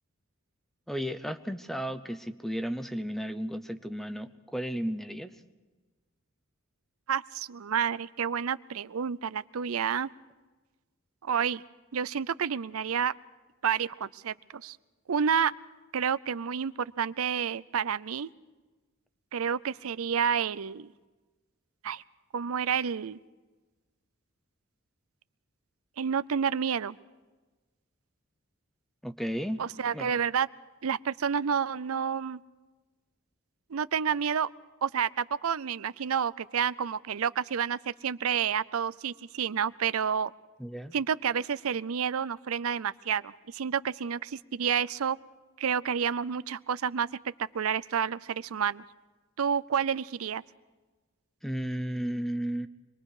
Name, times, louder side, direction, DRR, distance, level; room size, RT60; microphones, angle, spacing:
voice 1, 0.9-5.4 29.0-29.6 29.9-30.1 40.6-40.9 51.4-52.7, equal, ahead, 10 dB, 0.8 m, -34 dB
voice 2, 7.1-10.1 11.2-11.6 11.9-13.1 13.6-14.8 15.1-15.5 15.9-18.3 19.3-20.9 21.8-22.0 22.3-23.2 26.0-27.0 29.6-30.5 30.8-32.4 33.7-34.5 34.8-40.3 40.9-45.2 45.6-47.1 47.5-48.8 49.4-50.4, right 7 dB, 80° right, 17 dB, 0.5 m, -29 dB
26.0 x 21.5 x 4.9 m, 1.2 s
head